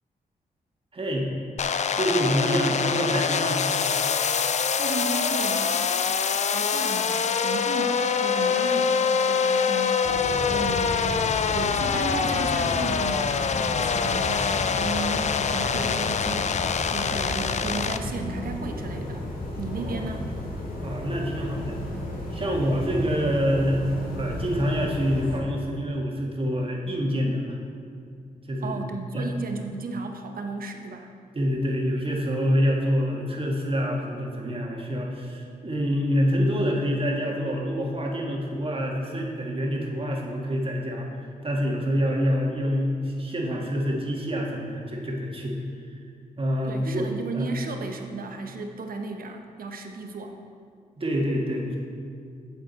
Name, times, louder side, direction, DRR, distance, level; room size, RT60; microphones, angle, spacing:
voice 1, 0.9-1.3 1.9-3.6 19.8-20.0 20.8-21.8 22.3-23.8 24.1-27.6 28.5-28.8 29.1-29.3 31.3-45.6 45.9-46.0 46.4-47.5 51.0-51.8, equal, 35° right, -1 dB, 1.6 m, -26 dB
sound 1, 1.6-18.0, left 6 dB, 45° left, 0.4 m, -25 dB
voice 2, 4.7-6.0 6.4-10.0 10.5-11.3 11.5-19.3 19.6-20.3 28.6-31.1 46.7-50.4, right 3 dB, 65° right, 5 dB, 0.9 m, -34 dB
sound 2, 10.0-25.4, left 1 dB, 65° left, 1.6 m, -33 dB
9.1 x 7.2 x 4.1 m, 2.3 s
cardioid pair, 65°, 16 cm